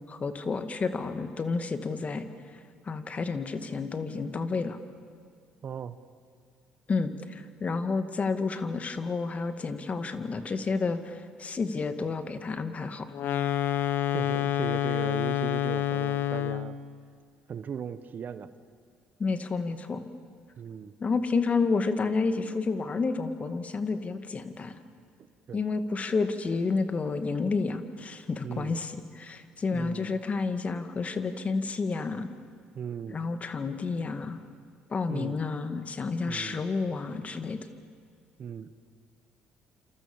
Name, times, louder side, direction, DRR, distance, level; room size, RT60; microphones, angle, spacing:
voice 1, 0.1-2.3 2.9-4.8 6.9-13.1 19.2-20.0 21.0-24.8 25.5-32.3 33.1-34.4 34.9-37.6, left 4 dB, 35° left, 9 dB, 2.2 m, -30 dB
voice 2, 5.6-6.0 14.1-16.8 17.5-18.5 20.6-20.9 25.5-25.6 28.4-28.8 29.7-30.2 32.7-33.2 35.1-35.4 36.3-36.6 38.4-38.7, right 7 dB, 50° right, 13 dB, 1.2 m, -37 dB
sound 1, 13.1-16.8, left 12 dB, 60° left, 1.0 m, -28 dB
28.0 x 27.5 x 7.3 m, 2.2 s
supercardioid pair, 70°, 4 cm